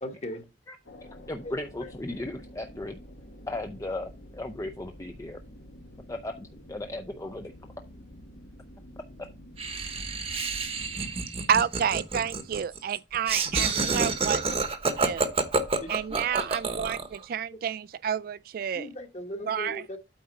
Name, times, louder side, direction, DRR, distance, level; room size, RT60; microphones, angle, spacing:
voice 1, 0.0-0.4 1.8-1.9 13.6-13.9 15.8-16.4 18.7-20.0, left 1 dB, 40° left, 1.3 m, -38 dB
sound 1, 0.8-11.3, equal, 85° left, 1.5 m, -48 dB
voice 2, 1.3-3.0 3.5-5.4 6.1-7.5, left 2 dB, 20° left, 0.5 m, -36 dB
Laughter, 9.6-17.2, right 4 dB, 35° right, 0.9 m, -28 dB
voice 3, 11.5-14.4 15.0-15.3 15.9-18.9 19.5-19.8, right 8 dB, 55° right, 0.3 m, -29 dB
8.6 x 3.9 x 5.3 m
head